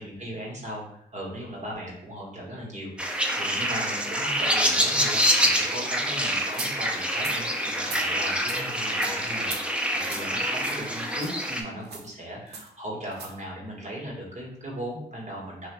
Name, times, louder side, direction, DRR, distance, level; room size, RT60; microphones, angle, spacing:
voice 1, 0.0-15.7, equal, 40° right, -3 dB, 1.5 m, -38 dB
sound 1, 3.0-11.6, equal, 5° right, 0.6 m, -26 dB
sound 2, 6.5-6.7 7.2-7.4 7.8-8.0 8.5-8.6 9.0-9.1 9.4-9.6 10.0-10.2 10.6-10.8 11.2-11.3 11.8-12.1 12.5-12.7 13.1-13.3, right 4 dB, 70° right, 0.7 m, -37 dB
3.2 x 2.7 x 4.4 m, 0.72 s
cardioid pair, 75°, 17 cm